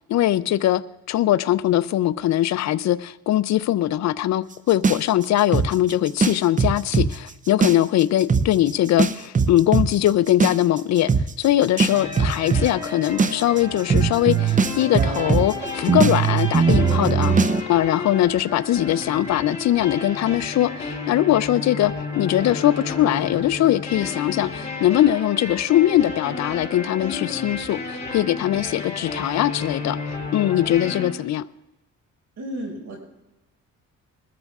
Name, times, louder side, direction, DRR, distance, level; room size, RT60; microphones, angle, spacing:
voice 1, 0.1-0.8 1.1-11.1 11.4-31.5, left 13 dB, 65° left, 0.5 m, -21 dB
sound 1, 4.8-7.1 7.5-8.0 8.3-8.5 9.0-17.6, right 5 dB, 25° right, 0.6 m, -20 dB
sound 2, 11.9-31.1, left 3 dB, 25° left, 5.5 m, -32 dB
voice 2, 32.4-33.0, equal, 70° right, 5.5 m, -32 dB
21.5 x 13.5 x 2.4 m
cardioid pair, 90°, 30 cm